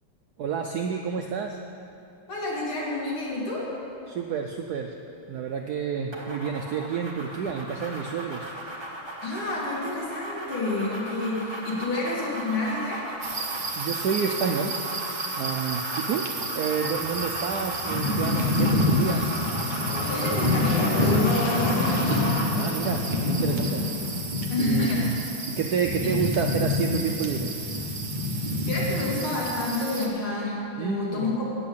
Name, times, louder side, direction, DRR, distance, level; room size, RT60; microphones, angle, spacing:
voice 1, 0.4-1.6 4.1-4.9 5.3-8.5 13.8-14.8 15.4-19.3 22.6-23.9 24.6-25.1 25.5-27.5 30.8-31.3, right 6 dB, 80° right, 3 dB, 0.8 m, -29 dB
voice 2, 2.3-3.7 9.2-13.0 20.1-22.2 24.5-25.1 26.0-26.1 28.7-31.4, left 2 dB, 90° left, -6 dB, 3.2 m, -29 dB
sound 1, 6.1-22.6, right 1 dB, 15° right, 1.0 m, -36 dB
sound 2, 13.2-30.1, left 1 dB, 45° right, 0.6 m, -28 dB
Engine, 16.8-24.2, left 2 dB, 55° left, 1.5 m, -34 dB
8.3 x 7.6 x 8.5 m, 2.7 s
omnidirectional pair, 2.3 m